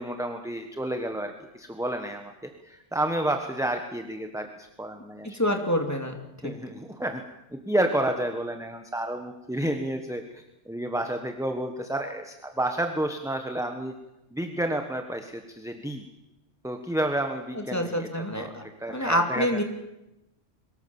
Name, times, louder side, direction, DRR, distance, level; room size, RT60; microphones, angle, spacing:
voice 1, 0.0-2.3 2.6-5.4 6.4-7.2 7.5-13.9 14.3-16.1 16.6-19.6, right 1 dB, 5° right, 5 dB, 1.3 m, -30 dB
voice 2, 5.2-6.1 6.4-6.5 17.5-18.6 18.9-19.6, equal, 15° left, 3 dB, 2.7 m, -27 dB
23.5 x 19.5 x 7.2 m, 0.95 s
omnidirectional pair, 1.3 m